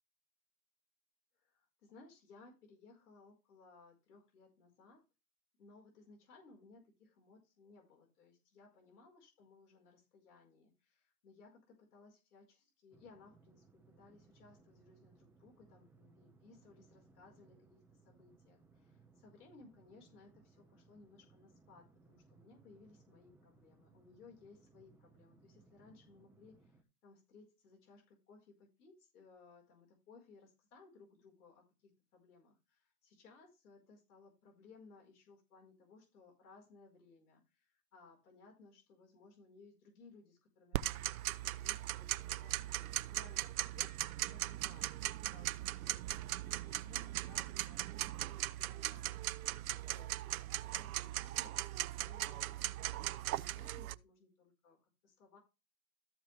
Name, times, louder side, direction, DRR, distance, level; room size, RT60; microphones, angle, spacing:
voice 1, 1.3-5.0 5.6-50.2 50.4-55.4, left 4 dB, 65° left, 0 dB, 5.1 m, -62 dB
sound 1, 12.9-26.8, right 4 dB, 5° right, 1.2 m, -66 dB
Tick-tock, 40.7-53.9, right 14 dB, 60° right, 0.6 m, -39 dB
14.0 x 5.9 x 3.4 m, 0.27 s
hypercardioid pair, 120°, 49 cm